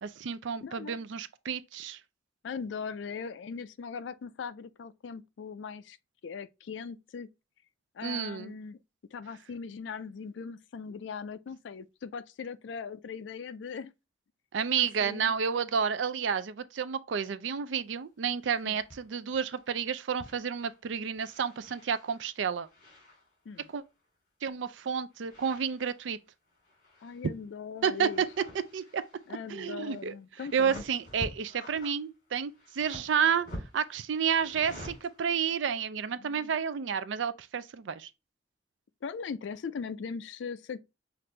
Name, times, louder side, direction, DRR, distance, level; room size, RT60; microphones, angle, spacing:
voice 1, 0.0-2.0 8.0-8.5 14.5-22.7 23.7-23.8 24.4-26.2 27.8-28.3 28.7-29.0 29.5-30.1 30.5-33.5 33.7-38.1, right 7 dB, 90° right, 0.4 m, -30 dB
voice 2, 0.6-1.0 2.4-6.0 6.2-7.3 7.9-8.8 9.1-13.9 14.8-15.3 18.6-18.8 23.5-23.7 27.0-28.2 29.3-30.8 36.2-36.5 39.0-40.8, left 5 dB, 75° left, 0.4 m, -40 dB
sound 1, 18.8-19.0 19.3-19.8 20.2-20.8 21.2-23.9 25.1-26.2 26.5-27.5 27.8-35.5, equal, 45° left, 2.4 m, -49 dB
5.9 x 2.5 x 3.2 m
head